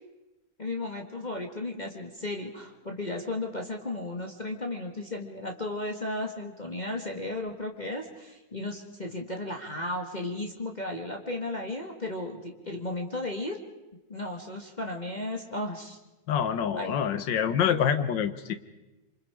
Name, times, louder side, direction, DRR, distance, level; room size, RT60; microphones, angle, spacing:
voice 1, 0.6-13.6 14.1-16.0 16.7-16.9, left 2 dB, 25° left, 1 dB, 1.7 m, -34 dB
voice 2, 16.3-18.5, left 8 dB, 80° left, 11 dB, 1.7 m, -26 dB
27.0 x 25.0 x 5.0 m, 1.0 s
omnidirectional pair, 2.0 m